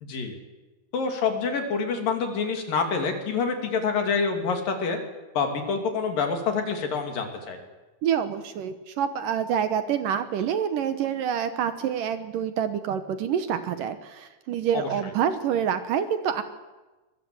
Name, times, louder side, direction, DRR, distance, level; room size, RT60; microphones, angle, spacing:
voice 1, 0.0-0.4 0.9-5.0 5.3-7.6 14.7-14.9, left 5 dB, 65° left, 5 dB, 4.4 m, -27 dB
voice 2, 8.0-16.4, right 8 dB, 70° right, 10 dB, 2.5 m, -27 dB
24.5 x 22.5 x 7.9 m, 1.2 s
omnidirectional pair, 4.4 m